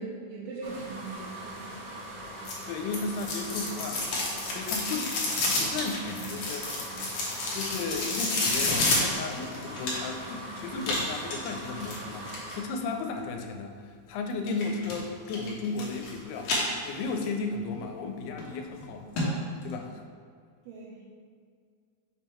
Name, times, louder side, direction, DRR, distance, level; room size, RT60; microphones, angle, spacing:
voice 1, 0.0-1.8 20.7-21.0, right 3 dB, 80° right, -6 dB, 2.9 m, -40 dB
sound 1, 0.6-12.6, right 1 dB, 60° right, 2.0 m, -42 dB
sound 2, 2.5-10.3 10.8-12.6 14.5-15.0 15.3-16.1 16.4-17.3 17.7-17.8 18.4-18.5 18.8-18.9 19.2-19.3 19.6-19.7, left 2 dB, 70° left, 1.8 m, -30 dB
voice 2, 2.7-4.0 4.5-6.7 7.5-16.5 16.8-19.1 19.6-20.1, left 4 dB, 90° left, 4 dB, 2.6 m, -34 dB
6.3 x 3.6 x 4.4 m, 2.1 s
omnidirectional pair, 4.6 m